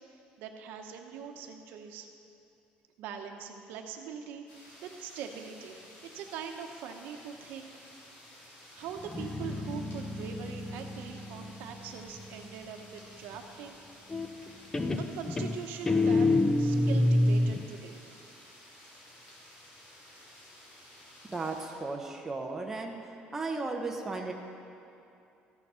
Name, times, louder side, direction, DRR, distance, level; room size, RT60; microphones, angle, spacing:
voice 1, 0.0-2.1 3.0-5.9 6.1-7.7 8.7-13.8 15.0-16.3 16.6-18.3, right 7 dB, 75° right, 4 dB, 0.9 m, -42 dB
sound 1, 4.5-21.7, left 1 dB, 65° left, 3.3 m, -54 dB
Guitar, 9.0-12.6 14.1-14.5 14.7-17.7, left 2 dB, 15° left, 0.5 m, -28 dB
voice 2, 21.2-23.0 23.3-24.3, right 3 dB, 10° right, 1 dB, 0.8 m, -35 dB
14.5 x 7.0 x 5.6 m, 2.7 s
cardioid pair, 165°, 3 cm